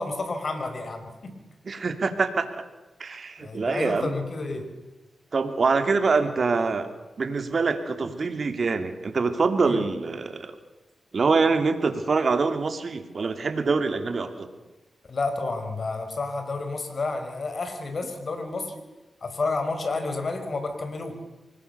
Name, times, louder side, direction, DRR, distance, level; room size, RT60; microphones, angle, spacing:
voice 1, 0.0-1.3 3.4-4.7 9.6-9.8 15.1-18.9 19.2-21.1, left 3 dB, 60° left, 7 dB, 5.1 m, -30 dB
voice 2, 1.7-2.6 3.0-4.1 5.3-6.9 7.2-10.5 11.1-14.5, right 4 dB, 60° right, 8 dB, 2.9 m, -25 dB
25.0 x 20.5 x 6.9 m, 1.1 s
cardioid pair, 45°, 0 cm